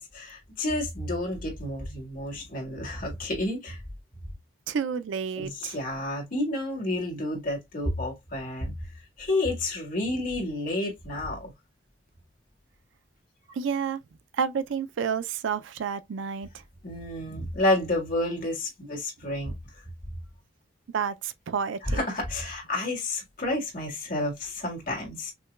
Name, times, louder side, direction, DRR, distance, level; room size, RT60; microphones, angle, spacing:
voice 1, 0.0-3.8 5.4-8.7 9.2-11.5 16.8-19.8 21.8-25.3, left 1 dB, 50° left, 1.7 m, -30 dB
voice 2, 4.7-5.8 13.5-14.0 14.4-16.5 20.9-22.1, right 6 dB, 85° right, 0.4 m, -30 dB
5.9 x 2.2 x 2.3 m
head